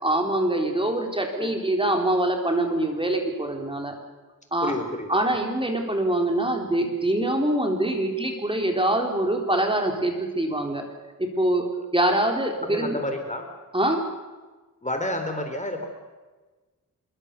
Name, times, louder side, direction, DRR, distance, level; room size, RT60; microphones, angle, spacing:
voice 1, 0.0-3.9 4.5-4.7 5.1-10.8 11.2-11.6 11.9-13.0 13.7-14.0, right 1 dB, 15° right, 3 dB, 4.0 m, -24 dB
voice 2, 4.6-5.3 12.6-13.5 14.8-15.8, left 1 dB, 20° left, 5 dB, 3.5 m, -30 dB
26.0 x 23.0 x 6.9 m, 1.3 s
wide cardioid pair, 95°, 34 cm